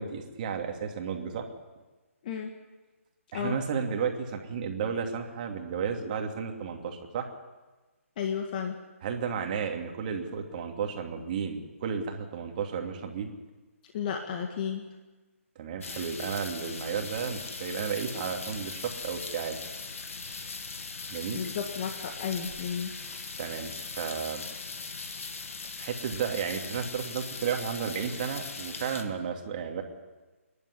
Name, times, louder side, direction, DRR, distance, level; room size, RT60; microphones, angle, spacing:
voice 1, 0.0-1.5 3.3-7.3 9.0-13.3 15.6-19.6 21.1-21.4 23.4-24.4 25.8-29.8, right 6 dB, 35° right, 3 dB, 2.7 m, -33 dB
voice 2, 2.2-2.5 3.3-3.6 8.2-8.8 13.9-14.9 21.3-22.9, left 7 dB, 35° left, 3 dB, 1.8 m, -33 dB
sound 1, 15.8-29.0, left 4 dB, 70° left, 2.2 m, -40 dB
27.0 x 11.0 x 9.9 m, 1.2 s
hypercardioid pair, 150°, 8 cm